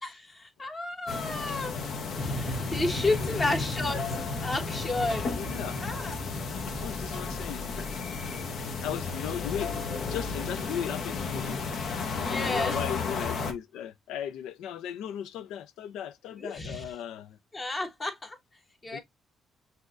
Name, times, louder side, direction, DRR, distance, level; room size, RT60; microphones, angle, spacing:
voice 1, 0.0-1.7 2.2-5.3 5.8-6.2 12.1-12.8 16.4-16.8 17.5-18.4 18.8-19.0, left 2 dB, 30° left, 1.2 m, -32 dB
sound 1, 1.1-13.5, left 4 dB, 65° left, 0.8 m, -34 dB
Motorcycle / Traffic noise roadway noise, 2.2-7.4, equal, 50° left, 1.6 m, -37 dB
voice 2, 3.2-3.6 5.3-5.8 6.8-7.8 8.8-9.7 10.0-11.6 12.2-17.4 18.9-19.0, left 10 dB, 90° left, 0.4 m, -37 dB
5.9 x 2.7 x 2.4 m
cardioid pair, 90°, 0 cm